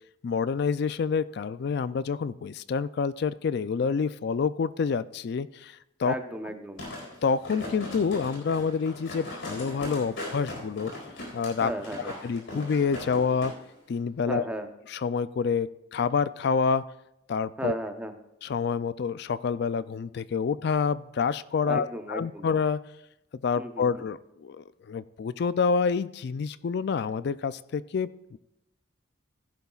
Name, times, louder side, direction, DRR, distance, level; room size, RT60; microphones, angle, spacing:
voice 1, 0.2-6.1 7.2-10.9 11.3-11.7 12.0-13.5 13.9-14.4 14.9-16.8 17.3-17.7 18.4-22.8 23.4-28.4, left 5 dB, 55° left, 16 dB, 0.3 m, -28 dB
voice 2, 6.0-6.8 11.6-12.2 14.3-14.7 17.6-18.1 21.7-22.5 23.6-23.9, right 1 dB, 5° right, 6 dB, 0.7 m, -34 dB
sound 1, 6.8-13.5 13.9-14.0, left 1 dB, 75° left, 4.4 m, -39 dB
16.0 x 10.5 x 2.4 m, 0.89 s
head